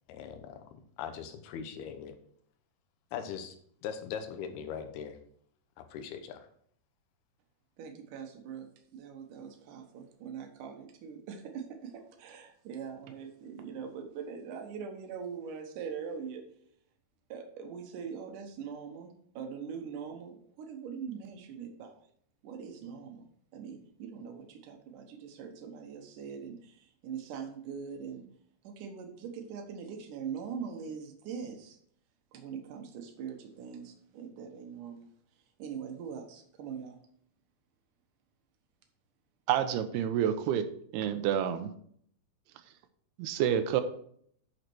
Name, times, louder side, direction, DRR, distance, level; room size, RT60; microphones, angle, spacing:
voice 1, 0.1-0.7 1.0-2.2 3.1-3.6 3.8-5.2 5.8-6.5, left 7 dB, 75° left, 7 dB, 2.9 m, -40 dB
voice 2, 7.8-8.7 8.9-16.4 17.3-22.0 22.4-23.2 23.5-28.2 28.6-31.8 32.3-35.0 35.6-37.0, right 6 dB, 65° right, 5 dB, 2.4 m, -42 dB
voice 3, 39.5-40.6 40.9-41.7 43.2-43.8, right 10 dB, 85° right, 9 dB, 2.6 m, -28 dB
8.7 x 6.6 x 4.6 m, 0.63 s
omnidirectional pair, 4.7 m